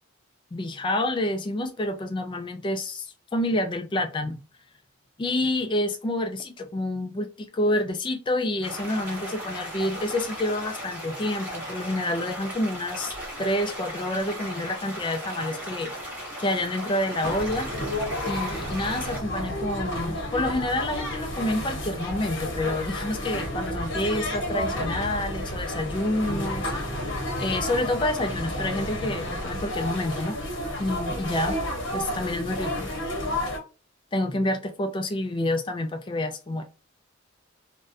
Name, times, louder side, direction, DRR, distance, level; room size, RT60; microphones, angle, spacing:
voice 1, 0.5-3.1 3.3-4.4 5.2-15.9 16.4-17.7 18.2-26.7 27.4-30.4 30.8-31.6 31.9-32.9 34.1-36.6, left 1 dB, 25° left, 0.3 m, -28 dB
sound 1, 8.6-19.2, equal, 10° right, 0.8 m, -37 dB
sound 2, 17.2-33.6, left 1 dB, 55° left, 0.9 m, -31 dB
2.4 x 2.1 x 2.5 m
head